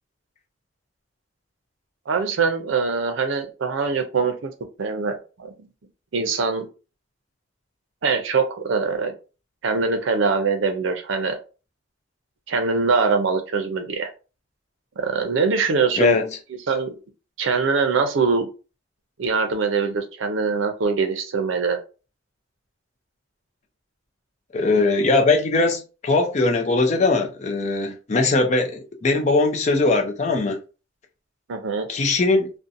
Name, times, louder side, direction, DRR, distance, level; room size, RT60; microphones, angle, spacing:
voice 1, 2.1-4.5 4.8-5.5 6.1-6.7 8.0-9.1 9.6-11.4 12.5-14.1 15.0-16.2 16.7-16.9 17.4-18.5 19.2-21.8 31.5-31.9, right 4 dB, 75° right, 0.5 m, -23 dB
voice 2, 16.0-16.3 24.5-30.6 31.9-32.5, left 3 dB, 35° left, 0.4 m, -20 dB
2.6 x 2.1 x 2.5 m
head